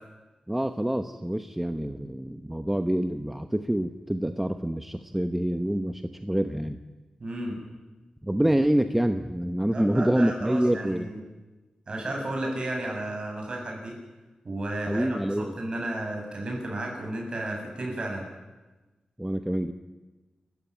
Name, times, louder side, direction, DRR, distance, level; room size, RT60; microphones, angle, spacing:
voice 1, 0.5-6.8 8.2-11.1 14.9-15.5 19.2-19.7, right 1 dB, 10° right, 8 dB, 0.9 m, -26 dB
voice 2, 7.2-7.6 9.7-11.2 11.9-13.9 14.4-18.2, right 1 dB, 45° right, 1 dB, 7.7 m, -33 dB
29.5 x 15.0 x 9.5 m, 1.2 s
wide cardioid pair, 120°, 2 cm